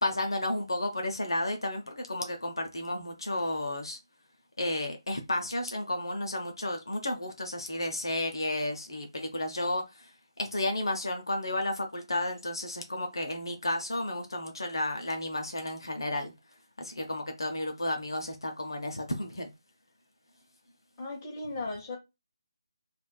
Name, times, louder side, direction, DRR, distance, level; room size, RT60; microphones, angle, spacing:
voice 1, 0.0-4.0 4.6-10.1 10.4-16.3 16.8-19.5, left 1 dB, 60° left, 0.7 m, -32 dB
voice 2, 21.0-22.0, left 2 dB, 25° left, 0.8 m, -36 dB
3.3 x 2.4 x 2.2 m
figure-of-eight pair, 155°, 3 cm